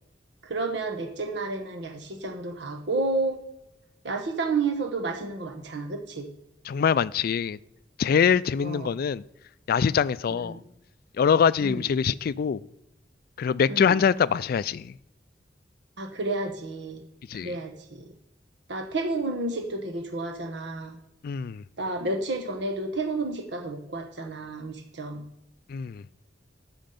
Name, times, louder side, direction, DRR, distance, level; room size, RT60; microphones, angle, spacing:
voice 1, 0.4-3.4 4.0-6.3 8.6-8.9 10.3-10.6 11.6-11.8 13.7-13.9 16.0-17.0 17.3-18.1 18.7-21.0 21.8-25.2, right 3 dB, 70° right, 1.1 m, -31 dB
voice 2, 6.7-7.6 8.0-9.2 9.7-10.6 11.2-12.6 13.4-14.9 17.3-17.5 21.2-21.6 25.7-26.0, left 7 dB, 55° left, 0.3 m, -24 dB
13.0 x 5.1 x 5.2 m
head